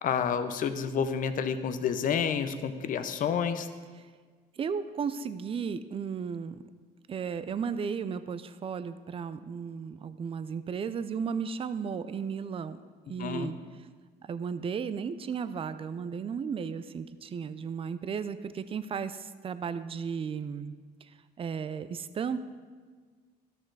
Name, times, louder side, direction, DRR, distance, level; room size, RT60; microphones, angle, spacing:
voice 1, 0.0-3.7 13.2-13.5, left 7 dB, 55° left, 10 dB, 0.7 m, -29 dB
voice 2, 4.6-6.6 7.1-12.8 13.1-13.9 14.2-20.7 21.0-22.4, right 6 dB, 35° right, 13 dB, 0.5 m, -35 dB
12.5 x 6.5 x 4.7 m, 1.5 s
cardioid pair, 110°, 17 cm